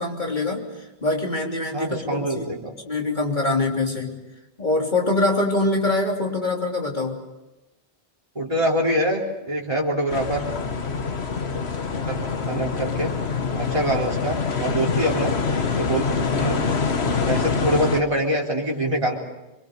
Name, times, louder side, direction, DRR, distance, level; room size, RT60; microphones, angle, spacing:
voice 1, 0.0-2.5 2.8-4.2 4.6-7.2, left 2 dB, 40° left, 0 dB, 3.5 m, -24 dB
voice 2, 1.7-2.7 8.4-10.4 12.1-13.1 13.6-15.3 15.7-16.6 17.0-19.2, right 1 dB, 25° right, -2 dB, 3.8 m, -25 dB
sound 1, 10.1-18.0, left 5 dB, 65° left, 1.6 m, -25 dB
27.5 x 23.0 x 6.7 m, 1.0 s
omnidirectional pair, 1.2 m